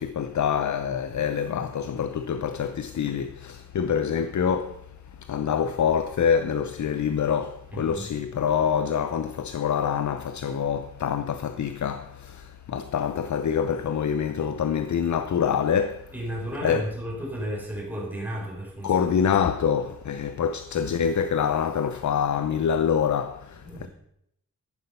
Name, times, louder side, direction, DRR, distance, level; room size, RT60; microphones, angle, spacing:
voice 1, 0.0-4.8 5.3-16.0 16.6-16.9 18.8-23.9, left 7 dB, 55° left, 0.7 m, -26 dB
voice 2, 7.7-8.1 16.1-19.0 23.6-23.9, equal, 5° right, 5.7 m, -33 dB
14.0 x 11.0 x 5.5 m
wide cardioid pair, 160°, 34 cm